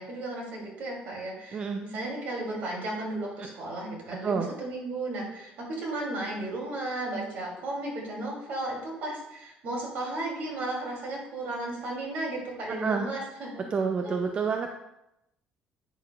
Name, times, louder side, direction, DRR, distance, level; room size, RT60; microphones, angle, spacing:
voice 1, 0.0-13.6 14.0-14.1, right 2 dB, 65° right, -3 dB, 2.9 m, -34 dB
voice 2, 13.7-14.7, right 5 dB, 35° right, 4 dB, 0.5 m, -28 dB
8.9 x 6.8 x 2.4 m, 0.87 s
cardioid pair, 135°, 3 cm